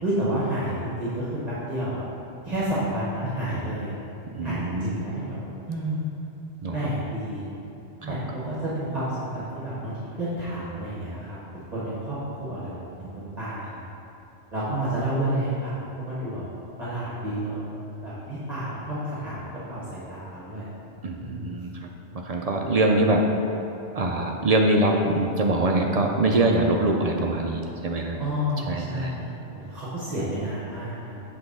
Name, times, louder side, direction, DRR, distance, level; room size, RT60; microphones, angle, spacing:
voice 1, 0.0-2.0 2.4-3.9 4.4-6.0 6.7-7.5 8.0-13.8 14.5-16.4 16.8-17.6 18.0-20.7 21.2-21.5 28.2-31.2, right 1 dB, 35° right, -9 dB, 1.3 m, -30 dB
voice 2, 4.3-5.0 6.6-6.8 8.0-8.2 21.0-21.9 22.2-23.3 23.9-28.2 28.7-29.1, right 2 dB, 50° right, 1 dB, 0.4 m, -23 dB
7.9 x 3.7 x 5.4 m, 2.9 s
omnidirectional pair, 1.1 m